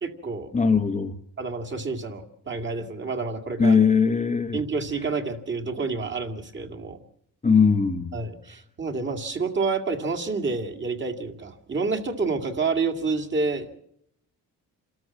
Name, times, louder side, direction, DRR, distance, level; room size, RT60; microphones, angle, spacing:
voice 1, 0.0-0.5 1.4-3.8 4.5-7.0 8.1-13.8, right 4 dB, 30° right, 6 dB, 2.3 m, -29 dB
voice 2, 0.5-1.1 3.6-4.6 7.4-8.1, left 5 dB, 20° left, 6 dB, 0.9 m, -20 dB
27.5 x 13.5 x 7.4 m, 0.71 s
cardioid pair, 130°, 35 cm